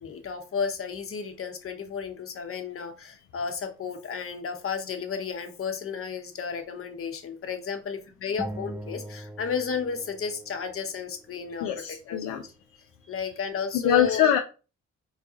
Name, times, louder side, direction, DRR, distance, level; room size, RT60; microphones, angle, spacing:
voice 1, 0.0-11.7 12.1-12.5 13.1-14.2, left 6 dB, 45° left, 6 dB, 0.8 m, -33 dB
sound 1, 8.4-11.0, right 1 dB, 5° right, 0.3 m, -40 dB
voice 2, 11.6-12.4 13.8-14.4, left 9 dB, 75° left, 5 dB, 0.5 m, -23 dB
3.9 x 2.3 x 2.7 m, 0.34 s
hypercardioid pair, 50°, 32 cm